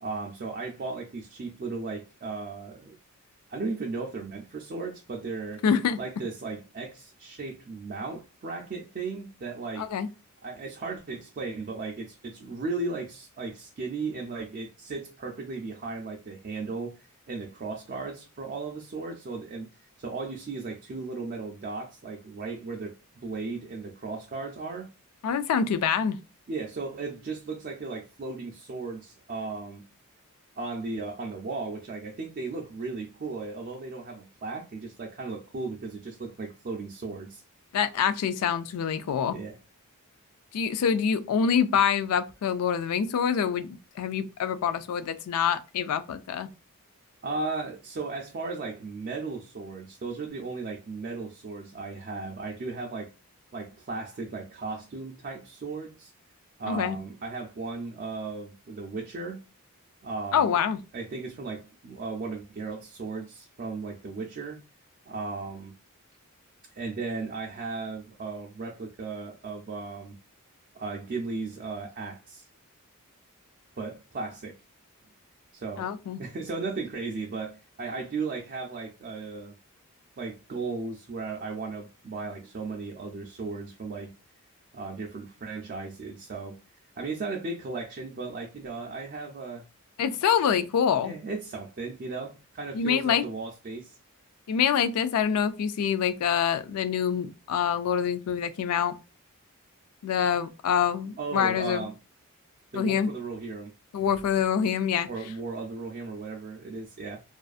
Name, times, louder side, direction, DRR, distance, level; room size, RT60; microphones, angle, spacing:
voice 1, 0.0-2.9 3.5-5.6 6.0-9.9 10.4-17.0 17.3-24.9 26.5-29.8 30.6-37.4 39.3-39.6 47.2-53.1 53.5-56.1 56.6-59.4 60.0-60.5 60.9-64.6 65.0-65.8 66.7-70.2 70.7-72.5 73.8-74.6 75.5-75.9 76.2-79.6 80.2-84.1 84.7-86.6 87.0-89.7 91.0-94.0 101.2-102.0 102.7-103.7 105.1-107.2, right 3 dB, 40° right, 0.4 m, -36 dB
voice 2, 5.6-6.0 9.8-10.1 25.2-26.2 37.7-39.4 40.5-43.7 44.0-46.5 56.7-57.0 60.3-60.8 75.8-76.2 90.0-91.1 92.7-93.2 94.5-98.9 100.0-101.9 102.7-103.1 103.9-105.1, left 7 dB, 80° left, 0.3 m, -26 dB
2.5 x 2.4 x 2.4 m
head